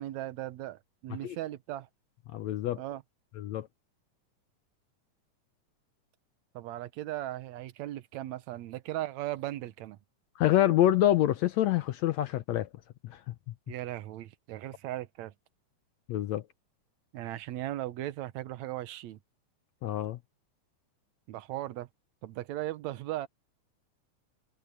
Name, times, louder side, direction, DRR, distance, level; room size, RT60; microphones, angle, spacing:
voice 1, 0.0-1.9 2.7-3.0 6.5-10.0 13.7-15.3 17.1-19.2 21.3-21.9 22.2-23.3, right 14 dB, 70° right, 2.1 m, -37 dB
voice 2, 2.3-2.8 3.4-3.7 10.4-12.7 13.0-13.3 16.1-16.4 19.8-20.2, left 13 dB, 70° left, 1.8 m, -26 dB
omnidirectional pair, 3.7 m